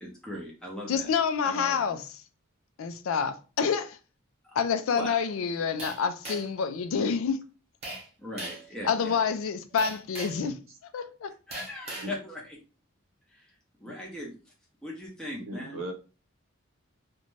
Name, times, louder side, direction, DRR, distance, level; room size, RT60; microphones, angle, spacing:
voice 1, 0.0-1.1 1.4-1.9 4.4-4.6 4.9-5.2 8.2-9.2 11.5-12.6 13.3-13.5 13.8-14.3 14.8-15.8, left 1 dB, 5° left, 0.6 m, -39 dB
voice 2, 0.9-2.1 2.8-4.0 4.6-7.4 8.8-10.6 10.9-11.3, left 6 dB, 75° left, 0.4 m, -28 dB
sound 1, 5.8-6.6 7.8-8.1 8.4-8.7 9.8-10.5 11.5-12.1, right 1 dB, 30° right, 1.0 m, -39 dB
voice 3, 15.4-15.9, right 1 dB, 70° right, 0.7 m, -36 dB
2.5 x 2.2 x 3.1 m
head